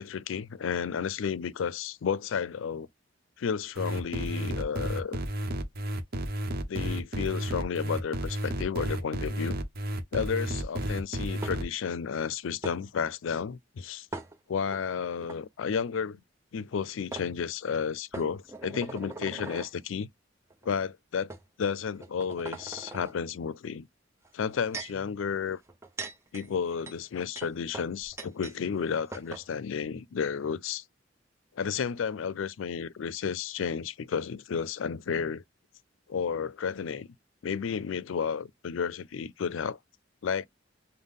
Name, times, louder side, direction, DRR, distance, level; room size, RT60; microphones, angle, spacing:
voice 1, 0.0-2.9 3.4-5.2 6.7-9.6 10.1-14.1 14.5-16.2 16.5-20.1 20.6-21.3 21.6-23.9 24.3-25.6 26.3-30.8 31.6-35.4 36.1-37.1 37.4-39.8 40.2-40.5, left 6 dB, 90° left, 0.4 m, -32 dB
sound 1, 3.8-11.6, right 1 dB, 50° right, 0.9 m, -32 dB
sound 2, 11.4-11.9 12.6-12.8 14.1-14.8 15.2-15.4 16.7-16.8 17.1-17.3 18.1-19.7 20.5-20.7 21.3-21.4 22.0-23.1 24.2-25.0 25.7-28.6 28.8-28.9 29.1-29.5, right 3 dB, 15° right, 0.8 m, -41 dB
5.3 x 2.2 x 3.6 m
head